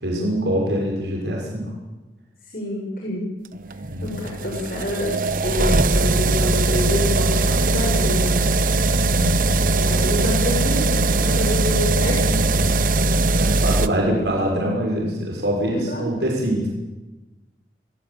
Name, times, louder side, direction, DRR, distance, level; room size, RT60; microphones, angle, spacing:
voice 1, 0.0-1.7 3.9-4.3 8.9-9.5 11.2-11.7 12.5-16.7, equal, 80° right, -2 dB, 6.3 m, -25 dB
voice 2, 2.5-3.2 4.0-5.2 5.4-8.4 9.7-12.4 15.7-16.1, left 1 dB, 50° left, -2 dB, 6.7 m, -27 dB
sound 1, 3.5-13.9, right 2 dB, 50° right, 1.0 m, -20 dB
29.0 x 18.5 x 8.9 m, 1.1 s
head